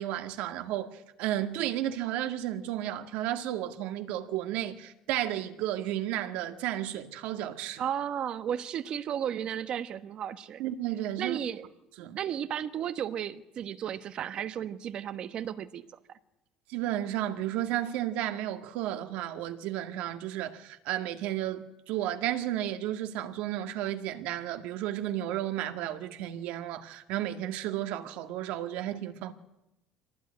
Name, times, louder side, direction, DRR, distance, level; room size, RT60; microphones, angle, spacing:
voice 1, 0.0-7.8 10.6-11.4 12.0-12.2 16.7-29.3, right 12 dB, 65° right, 2.0 m, -33 dB
voice 2, 7.8-10.6 11.2-11.6 12.1-15.9, right 9 dB, 35° right, 1.1 m, -34 dB
25.0 x 18.5 x 9.8 m
cardioid pair, 165°, 3 cm